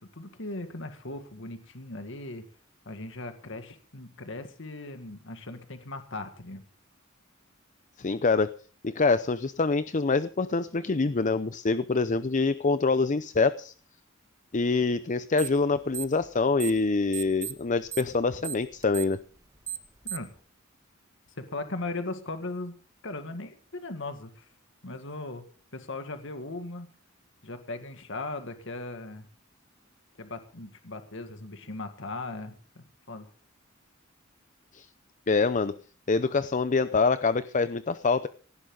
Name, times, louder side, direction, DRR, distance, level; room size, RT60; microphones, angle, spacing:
voice 1, 0.0-2.4 2.9-6.6 20.0-20.3 21.4-22.7 23.0-24.5 24.8-25.5 25.7-26.9 27.4-29.3 30.2-33.3, left 2 dB, 65° left, 8 dB, 2.0 m, -38 dB
voice 2, 8.0-8.5 8.8-13.7 14.5-19.2 34.7-34.9 35.3-35.7 36.1-38.3, left 4 dB, 40° left, 13 dB, 0.6 m, -25 dB
sound 1, 15.4-15.6 15.9-16.8 17.1-20.4, right 10 dB, 15° right, 1.8 m, -36 dB
18.0 x 15.5 x 3.9 m, 0.39 s
head